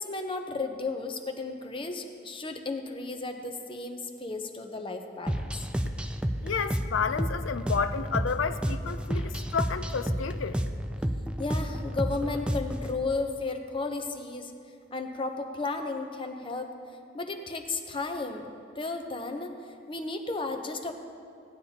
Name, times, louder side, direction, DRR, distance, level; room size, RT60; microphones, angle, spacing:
voice 1, 0.0-5.5 11.4-14.5 14.9-16.7 17.1-18.5 18.8-19.5 19.9-20.9, left 3 dB, 25° left, 5 dB, 0.7 m, -33 dB
sound 1, 5.3-12.9, equal, 5° right, 0.3 m, -31 dB
voice 2, 6.4-10.6, left 6 dB, 90° left, 12 dB, 0.5 m, -31 dB
17.5 x 9.7 x 2.8 m, 2.4 s
head